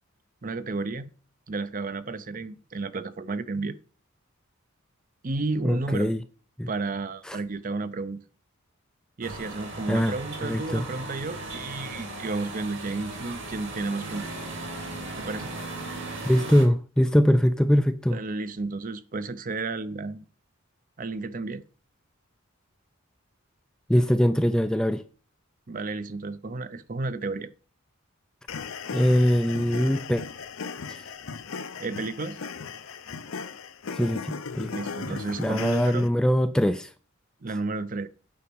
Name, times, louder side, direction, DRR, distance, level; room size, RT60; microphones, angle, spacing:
voice 1, 0.4-1.1 1.5-3.8 5.2-6.1 6.7-8.2 9.2-14.2 15.2-15.5 18.1-20.2 21.0-21.6 25.7-27.5 31.8-32.4 34.7-36.1 37.4-38.1, right 3 dB, 40° right, 0.6 m, -32 dB
voice 2, 5.6-6.2 6.6-6.7 7.3-7.4 9.9-10.1 10.4-10.9 16.2-18.2 23.9-25.0 28.9-30.2 30.9-31.0 33.9-34.7 35.1-36.9, equal, 5° left, 0.3 m, -22 dB
sound 1, 9.2-16.6, right 2 dB, 60° right, 2.5 m, -37 dB
sound 2, 28.5-36.1, left 5 dB, 75° left, 0.6 m, -37 dB
8.5 x 5.1 x 6.2 m
head